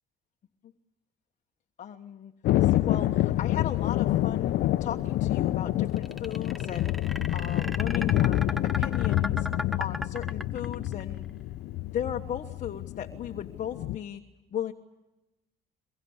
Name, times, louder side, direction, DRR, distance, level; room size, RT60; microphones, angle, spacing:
voice 1, 1.8-9.5 9.8-11.3 11.7-14.2 14.5-14.7, left 9 dB, 45° left, 3 dB, 1.3 m, -36 dB
Thunder, 2.4-14.0, left 14 dB, 75° left, 0.8 m, -27 dB
sound 1, 6.0-11.0, left 1 dB, ahead, 1.2 m, -36 dB
23.5 x 22.5 x 8.1 m, 0.99 s
cardioid pair, 110°, 17 cm